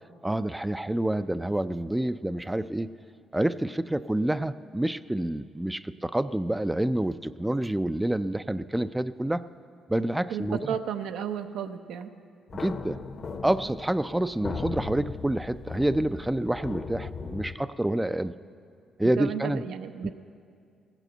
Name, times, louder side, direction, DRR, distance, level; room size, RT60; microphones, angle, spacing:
voice 1, 0.2-2.9 3.3-9.4 9.9-10.8 12.5-13.0 13.4-18.3 19.0-19.6 20.0-20.1, right 1 dB, 10° right, 14 dB, 0.3 m, -28 dB
voice 2, 10.3-12.1 19.2-20.1, right 8 dB, 85° right, 8 dB, 0.6 m, -33 dB
sound 1, 12.5-17.6, left 5 dB, 45° left, 0.8 m, -38 dB
14.5 x 9.1 x 7.9 m, 2.3 s
cardioid pair, 90°, 0 cm